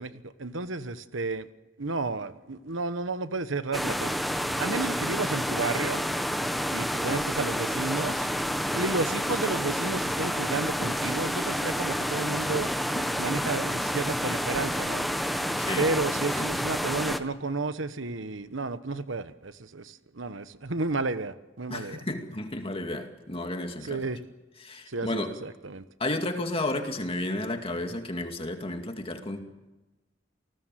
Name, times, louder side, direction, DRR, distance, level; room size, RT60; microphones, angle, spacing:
voice 1, 0.0-1.5 1.8-6.0 6.7-8.3 8.7-12.7 13.2-15.1 15.8-22.0 23.8-24.2 24.9-25.8, right 3 dB, 85° right, 12 dB, 1.2 m, -32 dB
sound 1, 3.7-17.2, equal, ahead, 1.3 m, -29 dB
voice 2, 21.7-24.0 24.6-25.3 26.0-29.4, left 2 dB, 30° left, 4 dB, 2.4 m, -32 dB
28.5 x 19.5 x 7.7 m, 1.1 s
head